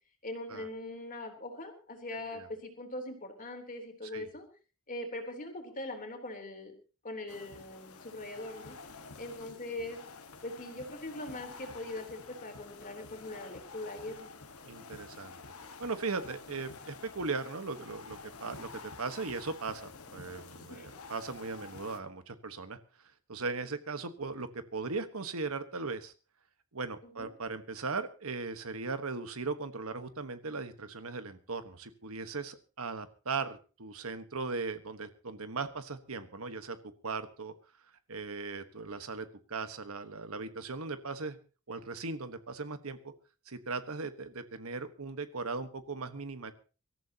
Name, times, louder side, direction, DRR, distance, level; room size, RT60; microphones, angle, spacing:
voice 1, 0.2-4.5 4.9-6.7 7.0-8.8 9.2-10.0 10.4-14.3 20.7-20.9 27.0-27.3, left 1 dB, 40° left, 4 dB, 3.5 m, -41 dB
sound 1, 7.3-22.0, left 4 dB, 90° left, 1.5 m, -49 dB
voice 2, 14.6-15.4 15.8-22.8 23.3-26.1 26.7-36.8 37.0-37.5 38.1-41.4 41.7-43.1 43.5-46.5, right 4 dB, 75° right, 10 dB, 1.3 m, -38 dB
24.0 x 14.0 x 2.9 m, 0.35 s
head